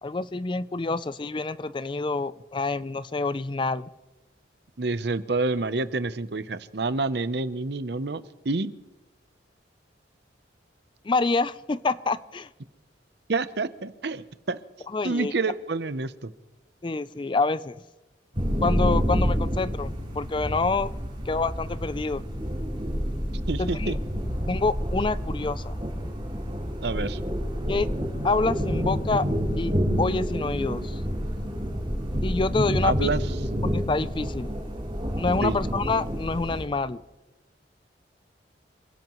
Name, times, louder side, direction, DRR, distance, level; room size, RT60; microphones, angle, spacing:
voice 1, 0.0-3.9 11.0-12.5 14.9-15.3 16.8-17.8 18.6-20.9 21.3-22.2 23.6-24.0 24.4-25.7 27.7-27.9 28.2-29.3 29.6-31.0 32.2-33.1 33.6-34.5 35.2-37.0, left 3 dB, 25° left, 15 dB, 0.4 m, -27 dB
voice 2, 4.8-8.7 13.3-14.6 15.0-16.3 23.5-24.0 26.8-27.2 32.8-33.2 33.5-33.7 35.4-35.6, right 3 dB, 60° right, 13 dB, 0.7 m, -28 dB
sound 1, 18.3-36.6, equal, 25° right, 4.8 m, -28 dB
27.0 x 16.5 x 3.1 m, 1.1 s
head